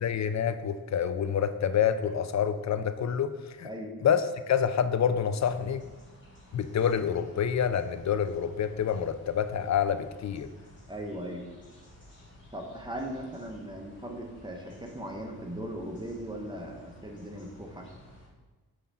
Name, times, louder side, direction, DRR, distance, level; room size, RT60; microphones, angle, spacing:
voice 1, 0.0-3.7 4.0-5.8 6.5-10.5, left 8 dB, 50° left, 11 dB, 0.5 m, -27 dB
sound 1, 5.2-18.3, left 1 dB, 30° left, 2.1 m, -54 dB
voice 2, 10.9-11.5 12.5-17.9, right 1 dB, 10° right, 1 dB, 1.0 m, -38 dB
5.7 x 4.9 x 4.1 m, 1.3 s
cardioid pair, 80°, 37 cm